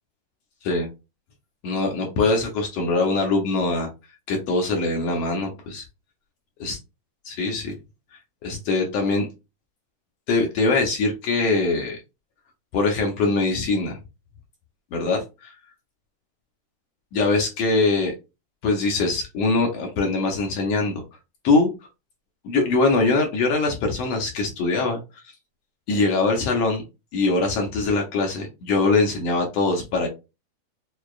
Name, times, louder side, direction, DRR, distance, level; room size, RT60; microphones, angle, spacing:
voice 1, 1.6-3.9 4.3-5.8 6.6-6.7 7.4-7.7 8.4-9.3 10.3-12.0 12.7-14.0 14.9-15.2 17.1-18.1 18.6-21.0 21.4-21.7 22.4-25.0 25.9-26.8 27.1-30.1, left 3 dB, 70° left, 2 dB, 1.6 m, -22 dB
6.5 x 2.4 x 2.4 m, 0.26 s
omnidirectional pair, 3.7 m